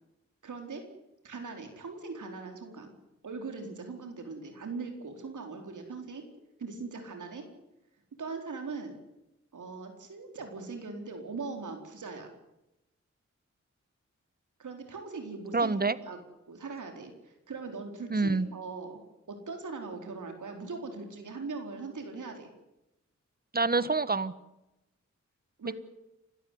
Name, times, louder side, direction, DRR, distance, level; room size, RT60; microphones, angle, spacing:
voice 1, 0.4-0.8 1.2-2.9 3.2-6.2 6.6-7.5 8.2-9.0 9.5-12.3 14.6-15.7 16.0-16.2 16.5-19.0 19.3-22.5 25.6-25.7, right 4 dB, 80° right, 4 dB, 4.4 m, -40 dB
voice 2, 15.5-16.0 18.1-18.5 23.5-24.3 25.7-25.8, right 3 dB, 30° right, 16 dB, 1.4 m, -26 dB
29.5 x 13.0 x 9.4 m, 0.92 s
cardioid pair, 50°, 30 cm